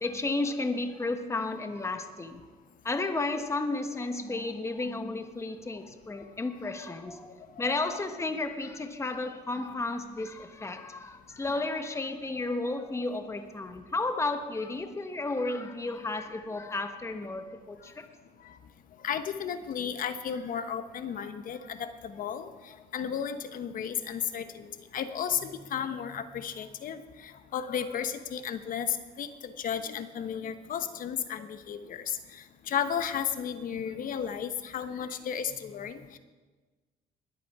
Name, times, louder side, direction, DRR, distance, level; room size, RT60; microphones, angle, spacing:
voice 1, 0.0-2.4 2.8-7.3 7.6-18.1, left 2 dB, 15° left, 7 dB, 1.2 m, -33 dB
voice 2, 19.0-24.7 24.9-36.2, left 8 dB, 55° left, 10 dB, 1.1 m, -34 dB
21.0 x 8.4 x 4.8 m, 1.3 s
cardioid pair, 110°, 17 cm